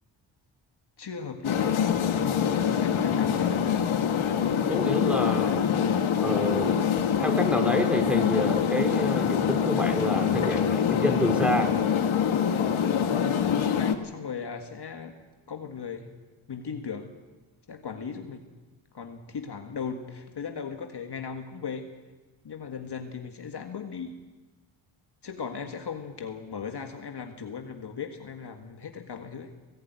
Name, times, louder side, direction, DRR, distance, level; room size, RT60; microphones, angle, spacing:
voice 1, 1.0-1.8 2.8-3.7 13.4-15.2 15.5-16.1 16.5-17.2 17.7-18.4 18.9-21.9 22.4-24.2 25.2-29.5, left 6 dB, 55° left, 5 dB, 1.8 m, -37 dB
sound 1, 1.4-13.9, left 8 dB, 75° left, 1.5 m, -25 dB
voice 2, 4.7-5.7 6.2-6.8 7.2-11.7, equal, ahead, 2 dB, 3.9 m, -28 dB
17.5 x 16.5 x 9.4 m, 1.2 s
cardioid pair, 65°, 49 cm